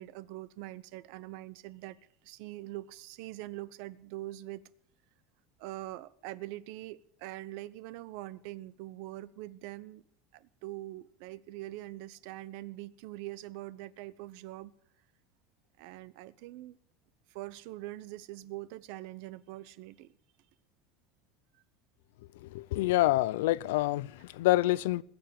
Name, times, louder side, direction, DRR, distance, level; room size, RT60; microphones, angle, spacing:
voice 1, 0.0-2.0 2.2-4.6 5.6-10.0 10.3-14.7 15.8-16.8 17.3-20.2 21.5-21.6, right 16 dB, 65° right, 0.8 m, -43 dB
voice 2, 22.4-25.0, left 17 dB, 85° left, 0.5 m, -27 dB
21.0 x 7.0 x 8.8 m
supercardioid pair, 155°, 0 cm